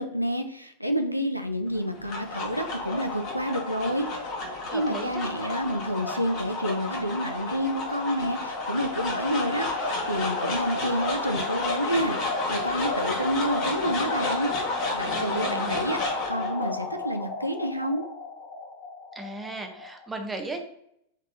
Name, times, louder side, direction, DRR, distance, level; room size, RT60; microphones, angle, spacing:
voice 1, 0.0-4.1 4.7-14.5 14.9-18.0, equal, 90° right, 7 dB, 0.3 m, -29 dB
sound 1, 1.8-20.1, left 3 dB, 40° left, 1.2 m, -31 dB
voice 2, 4.7-5.3 15.0-15.9 19.1-20.6, right 2 dB, 10° right, 3 dB, 0.6 m, -36 dB
4.1 x 3.4 x 2.5 m, 0.72 s
figure-of-eight pair, 90°, 0 cm